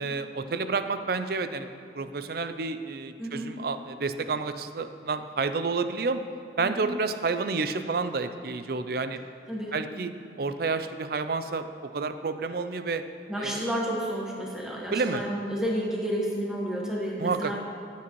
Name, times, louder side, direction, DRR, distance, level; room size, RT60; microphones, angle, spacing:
voice 1, 0.0-1.7 1.9-6.2 6.6-9.2 9.7-10.1 10.4-13.0 13.4-13.7 14.9-15.2 17.2-17.5, right 4 dB, 55° right, 10 dB, 0.5 m, -30 dB
voice 2, 3.2-3.5 6.6-6.9 9.5-9.7 13.3-17.5, equal, 5° right, -3 dB, 1.4 m, -31 dB
16.0 x 8.5 x 3.1 m, 2.7 s
head